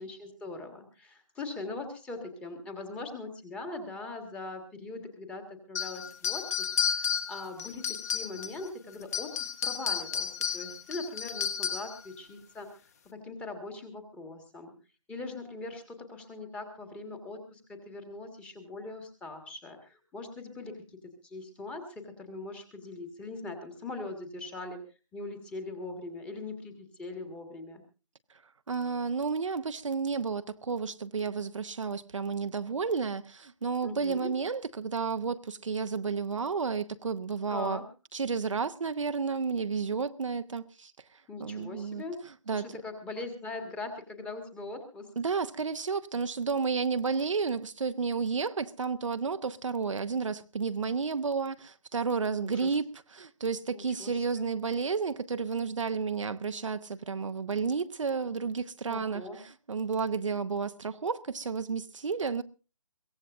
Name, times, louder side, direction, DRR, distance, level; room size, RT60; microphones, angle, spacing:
voice 1, 0.0-10.3 10.5-14.7 15.1-24.8 25.1-27.8 33.8-34.3 37.5-37.8 41.3-42.2 42.5-45.1 52.4-52.7 53.7-54.5 58.9-59.4, left 2 dB, 5° left, 1.6 m, -41 dB
sound 1, 5.8-8.7 9.0-12.0, left 7 dB, 25° left, 1.1 m, -32 dB
voice 2, 28.7-37.8 38.1-42.0 42.5-42.7 45.2-62.4, right 5 dB, 60° right, 0.8 m, -32 dB
22.5 x 17.0 x 2.5 m
figure-of-eight pair, 155°, 18 cm